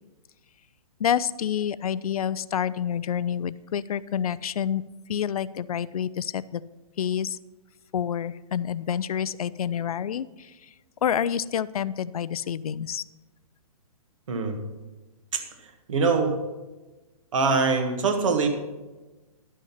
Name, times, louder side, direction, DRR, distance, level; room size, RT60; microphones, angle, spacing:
voice 1, 1.0-4.8 5.1-6.6 7.0-7.4 7.9-10.5 11.0-13.0, left 9 dB, 75° left, 18 dB, 0.4 m, -28 dB
voice 2, 14.3-14.6 15.3-16.3 17.3-18.5, right 4 dB, 55° right, 6 dB, 1.6 m, -24 dB
11.5 x 6.4 x 5.7 m, 1.1 s
hypercardioid pair, 165°, 19 cm